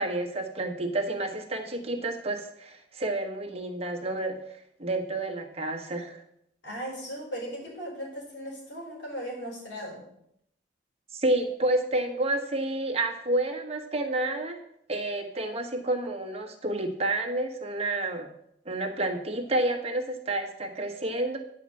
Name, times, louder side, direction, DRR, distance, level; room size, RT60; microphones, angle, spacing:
voice 1, 0.0-4.4 4.8-6.2 11.1-14.6 14.9-18.3 18.6-21.4, right 2 dB, 35° right, 3 dB, 1.3 m, -29 dB
voice 2, 6.6-10.1, equal, 85° left, -2 dB, 4.3 m, -37 dB
9.5 x 4.9 x 7.6 m, 0.73 s
head